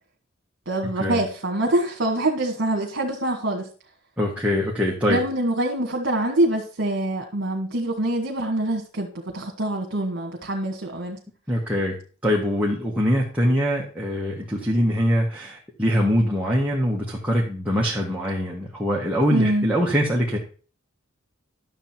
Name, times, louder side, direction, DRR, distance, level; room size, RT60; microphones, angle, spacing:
voice 1, 0.7-3.7 5.1-11.2 19.3-19.7, right 1 dB, 60° right, 0 dB, 1.8 m, -25 dB
voice 2, 4.2-5.2 11.5-12.0 12.2-20.4, equal, 5° right, -4 dB, 1.7 m, -23 dB
11.5 x 7.3 x 4.5 m, 0.38 s
head